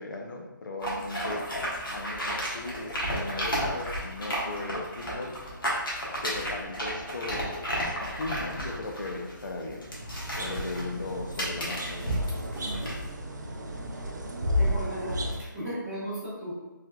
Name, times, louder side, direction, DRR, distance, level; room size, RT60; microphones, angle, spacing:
voice 1, 0.0-1.5 1.9-5.3 6.2-9.9 10.3-12.3, left 2 dB, 65° left, 1 dB, 0.5 m, -37 dB
sound 1, 0.8-13.1, equal, 90° left, 1.1 m, -33 dB
sound 2, 9.9-15.4, left 1 dB, 60° right, 0.5 m, -32 dB
voice 2, 14.2-16.5, right 1 dB, ahead, -17 dB, 0.7 m, -36 dB
3.3 x 2.8 x 2.2 m, 1.2 s
hypercardioid pair, 175°, 11 cm